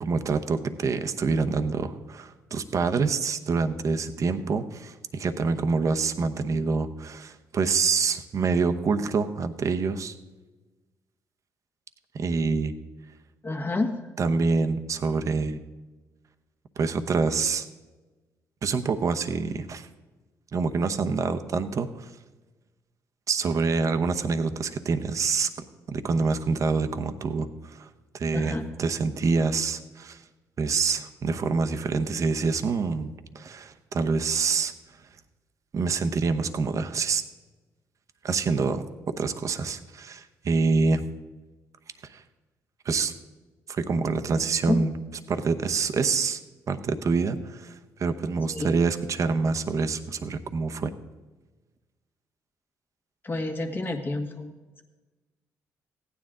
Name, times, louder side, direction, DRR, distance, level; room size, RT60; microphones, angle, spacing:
voice 1, 0.0-10.1 12.1-12.7 14.2-15.6 16.8-17.7 18.6-19.9 20.5-22.1 23.3-25.5 25.9-27.9 28.1-30.2 30.6-34.7 35.7-37.2 38.2-41.0 42.0-42.2 42.8-43.1 43.7-44.9 45.3-46.4 46.7-50.9, right 4 dB, 50° right, 8 dB, 0.9 m, -26 dB
voice 2, 13.4-13.9 28.3-28.7 44.7-44.8 48.5-48.7 53.2-54.8, left 2 dB, 30° left, 5 dB, 1.6 m, -29 dB
15.0 x 9.7 x 3.8 m, 1.2 s
supercardioid pair, 65°, 7 cm